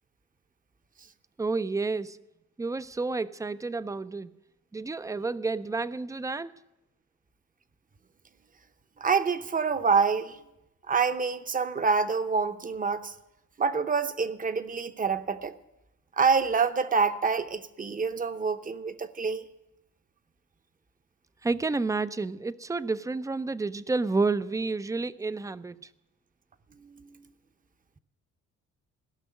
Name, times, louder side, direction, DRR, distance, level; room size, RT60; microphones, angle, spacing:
voice 1, 1.4-2.2 2.6-4.3 4.7-6.5 21.4-25.9, right 3 dB, 10° right, 0.4 m, -30 dB
voice 2, 9.0-10.4 10.9-13.1 13.6-15.5 16.2-19.4, right 5 dB, 25° right, 0.8 m, -26 dB
16.5 x 6.1 x 9.2 m
cardioid pair, 90°, 30 cm